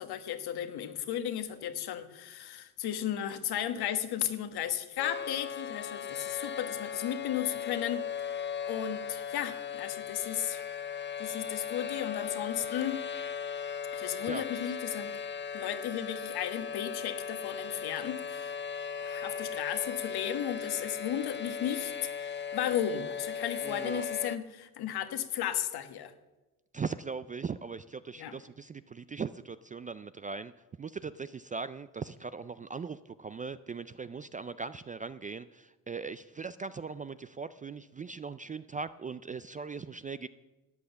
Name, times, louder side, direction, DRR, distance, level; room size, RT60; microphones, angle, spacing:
voice 1, 0.0-10.6 11.2-13.1 13.9-15.1 15.5-18.5 19.0-21.9 22.2-26.1 28.2-28.3, left 10 dB, 65° left, 9 dB, 1.4 m, -35 dB
sound 1, 5.0-24.4, left 7 dB, 30° left, 0.6 m, -37 dB
voice 2, 14.2-14.7 23.6-24.1 26.7-30.5 30.8-40.3, right 5 dB, 20° right, 14 dB, 0.3 m, -39 dB
13.0 x 8.5 x 7.0 m, 1.1 s
supercardioid pair, 80°, 41 cm